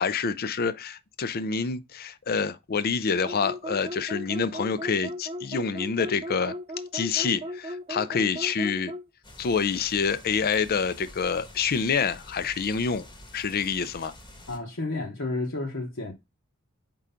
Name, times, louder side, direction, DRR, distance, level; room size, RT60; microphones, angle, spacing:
voice 1, 0.0-6.5 6.9-8.9 9.4-13.1 13.3-14.1, left 5 dB, 45° left, 0.5 m, -27 dB
sound 1, 3.2-9.1, equal, 25° right, 0.4 m, -36 dB
sound 2, 9.2-14.6, left 1 dB, 20° left, 1.1 m, -47 dB
voice 2, 14.5-16.1, left 2 dB, 60° left, 1.0 m, -31 dB
4.7 x 3.8 x 5.6 m
head